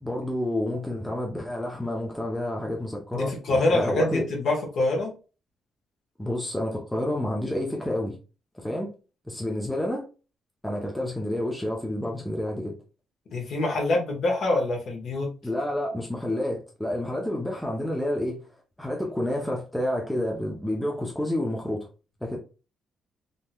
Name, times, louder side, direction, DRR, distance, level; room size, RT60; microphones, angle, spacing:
voice 1, 0.0-4.2 6.2-8.2 8.5-8.9 9.3-10.0 10.6-12.8 15.4-18.4 18.8-21.9 22.2-22.4, left 1 dB, 5° left, 0.6 m, -29 dB
voice 2, 3.1-5.1 13.3-15.3, left 2 dB, 50° left, 1.1 m, -25 dB
3.5 x 2.9 x 2.2 m
cardioid pair, 165°, 0 cm